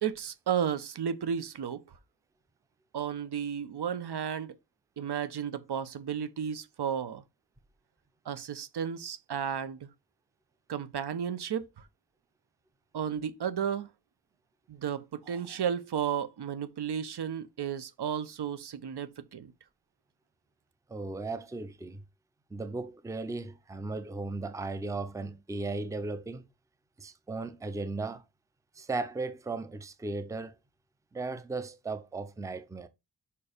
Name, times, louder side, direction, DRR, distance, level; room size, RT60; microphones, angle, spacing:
voice 1, 0.0-1.8 2.9-4.6 5.0-7.2 8.2-9.9 10.7-11.9 12.9-13.9 14.7-19.5, right 8 dB, 80° right, 0.9 m, -33 dB
voice 2, 20.9-22.0 22.5-26.4 27.0-28.2 28.8-30.6 31.1-32.9, right 3 dB, 10° right, 0.5 m, -36 dB
5.5 x 4.6 x 5.0 m
wide cardioid pair, 175°, 39 cm